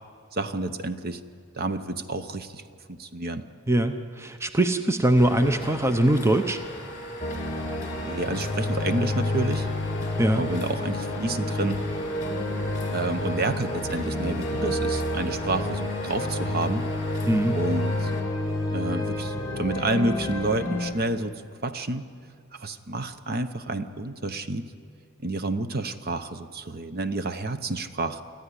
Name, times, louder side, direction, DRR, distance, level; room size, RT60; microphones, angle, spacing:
voice 1, 0.3-1.2 1.5-2.6 2.9-3.4 8.0-9.7 10.3-11.8 12.9-16.9 17.5-18.1 18.7-21.3 21.6-22.1 22.5-24.7 25.2-28.2, right 2 dB, 45° right, 11 dB, 0.9 m, -29 dB
voice 2, 3.7-6.6 10.2-10.4 17.3-17.6, right 1 dB, 10° right, 8 dB, 0.7 m, -22 dB
sound 1, 5.1-18.2, left 1 dB, 40° left, 3.2 m, -39 dB
sound 2, 7.2-20.9, left 1 dB, 20° left, 2.7 m, -29 dB
25.0 x 14.0 x 9.8 m, 2.2 s
head